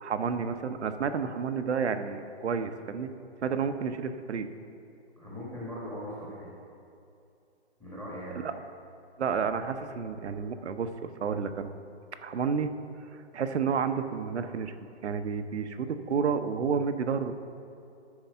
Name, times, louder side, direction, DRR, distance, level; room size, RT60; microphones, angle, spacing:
voice 1, 0.0-3.1 3.4-4.5 8.4-8.5 9.2-11.7 12.2-14.7 15.0-17.3, right 6 dB, 75° right, 9 dB, 0.8 m, -30 dB
voice 2, 5.2-6.5 7.8-8.4, equal, 5° left, -7 dB, 1.3 m, -39 dB
13.5 x 4.8 x 5.6 m, 2.6 s
hypercardioid pair, 160°, 34 cm